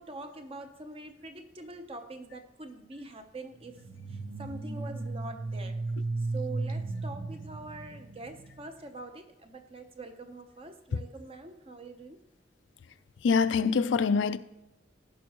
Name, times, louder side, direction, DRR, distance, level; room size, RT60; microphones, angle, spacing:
voice 1, 0.0-3.8 4.1-5.8 6.3-12.2, right 2 dB, 30° right, 0.7 m, -44 dB
sound 1, 3.8-8.6, right 3 dB, 80° right, 0.9 m, -35 dB
voice 2, 13.2-14.4, left 5 dB, 85° left, 0.4 m, -25 dB
15.5 x 5.4 x 2.9 m
head